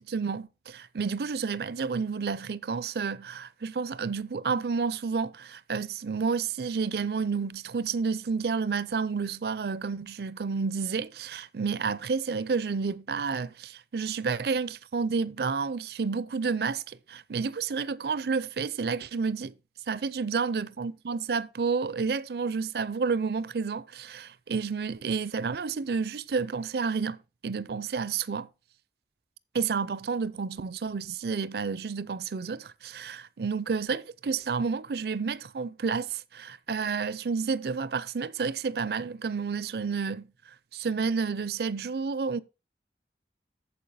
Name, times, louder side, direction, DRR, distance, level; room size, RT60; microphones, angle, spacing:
voice 1, 0.0-19.5 19.9-28.5 29.5-40.2 40.7-42.4, right 5 dB, 60° right, 0.5 m, -30 dB
8.6 x 7.1 x 4.2 m
head